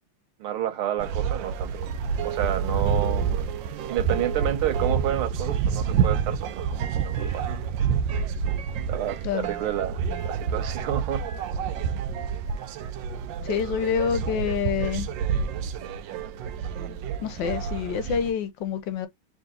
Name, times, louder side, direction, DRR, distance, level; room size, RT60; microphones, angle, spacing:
voice 1, 0.4-1.9 2.2-3.3 3.9-8.0 8.9-11.2, right 11 dB, 90° right, 1.8 m, -30 dB
sound 1, 1.0-18.3, right 7 dB, 75° right, 1.2 m, -28 dB
voice 2, 13.4-15.1 17.2-19.1, left 8 dB, 70° left, 1.2 m, -27 dB
3.9 x 3.0 x 3.7 m
omnidirectional pair, 2.3 m